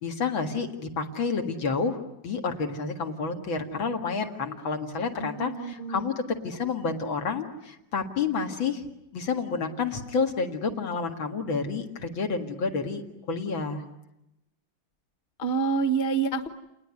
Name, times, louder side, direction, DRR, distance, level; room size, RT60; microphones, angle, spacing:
voice 1, 0.0-8.8 9.1-13.8, left 4 dB, 90° left, 4 dB, 2.8 m, -29 dB
voice 2, 5.2-6.1 15.4-16.5, right 5 dB, 30° left, 11 dB, 1.3 m, -27 dB
28.0 x 20.0 x 9.6 m, 0.89 s
omnidirectional pair, 2.1 m